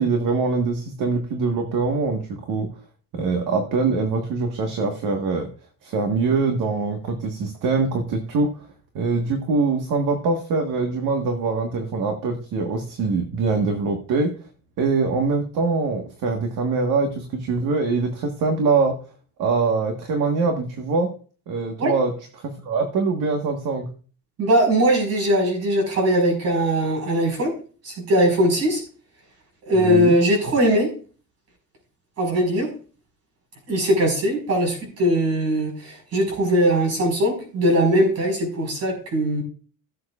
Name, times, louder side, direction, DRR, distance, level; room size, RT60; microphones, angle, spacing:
voice 1, 0.0-2.7 3.1-5.5 5.8-8.7 8.9-14.3 14.8-19.0 19.4-21.1 21.5-23.9 29.7-30.1, right 4 dB, 60° right, 4 dB, 1.5 m, -23 dB
voice 2, 24.4-27.5 27.8-28.8 29.7-30.9 32.2-32.7 33.7-39.4, equal, 45° right, 3 dB, 5.2 m, -20 dB
16.5 x 7.7 x 2.4 m, 0.39 s
cardioid pair, 180°, 36 cm